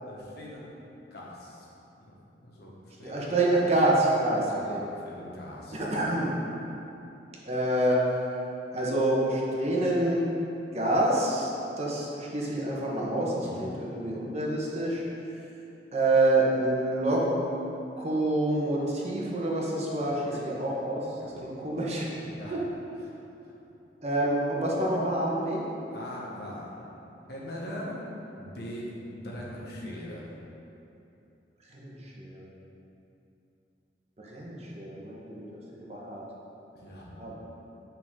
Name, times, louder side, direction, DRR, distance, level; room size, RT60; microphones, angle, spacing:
voice 1, 0.0-0.7 1.1-1.7 2.0-3.4 4.5-5.8 13.4-13.8 20.1-20.5 21.2-21.7 22.3-22.6 23.4-23.5 25.9-26.7 27.3-28.0 28.3-30.3 36.7-37.1, left 1 dB, 65° left, -4 dB, 1.4 m, -41 dB
voice 2, 3.0-4.8 5.7-6.3 7.5-8.0 8.7-10.3 10.7-11.5 11.8-15.0 15.9-17.2 18.0-22.1 22.5-22.6 24.0-25.6 31.7-32.5 34.2-35.4 35.7-36.2 37.2-37.4, right 1 dB, 40° right, -4 dB, 1.3 m, -27 dB
8.6 x 5.8 x 3.8 m, 2.8 s
head